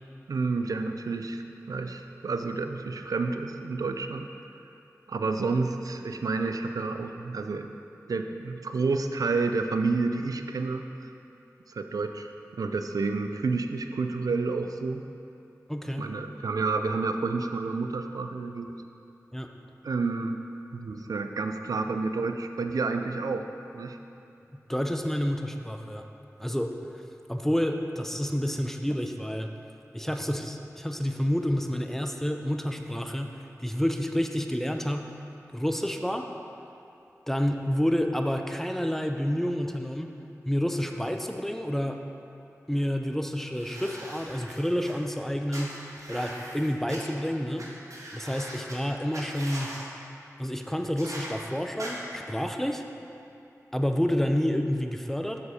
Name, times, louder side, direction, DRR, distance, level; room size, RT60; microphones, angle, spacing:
voice 1, 0.3-4.3 5.1-7.7 8.1-11.1 11.7-12.3 12.6-15.0 16.0-18.7 19.8-20.4 20.7-23.5 23.7-24.0, right 4 dB, 90° right, 6 dB, 0.4 m, -29 dB
voice 2, 15.7-16.1 19.3-19.5 24.7-26.0 26.4-29.5 29.9-35.1 35.5-36.3 37.3-40.2 40.5-42.0 42.7-47.7 48.1-49.7 50.4-52.8 53.7-55.4, equal, 5° left, 4 dB, 0.6 m, -29 dB
sound 1, 43.5-44.9 45.5-47.0 47.6-47.7 47.9-48.7 49.1-49.8 51.0-51.3 51.8-51.9, right 1 dB, 65° right, 1.5 m, -41 dB
7.1 x 6.7 x 5.0 m, 2.8 s
cardioid pair, 45°, 6 cm